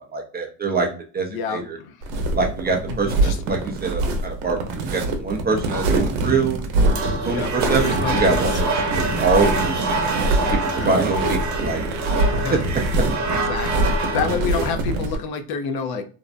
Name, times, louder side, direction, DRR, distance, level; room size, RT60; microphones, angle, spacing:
voice 1, 0.1-0.9 1.1-1.8 2.3-6.6 7.2-9.9 10.3-11.8 12.5-12.6 13.0-13.1, right 4 dB, 20° right, 1 dB, 0.4 m, -24 dB
voice 2, 1.3-1.9 2.9-3.4 7.3-8.4 10.7-10.9 12.3-12.6 13.3-16.1, left 5 dB, 55° left, 8 dB, 0.5 m, -28 dB
sound 1, 2.0-15.2, right 2 dB, 70° right, 0.8 m, -24 dB
sound 2, 6.8-14.7, right 2 dB, 35° right, 0.9 m, -26 dB
2.6 x 2.0 x 2.4 m, 0.40 s
supercardioid pair, 90°, 47 cm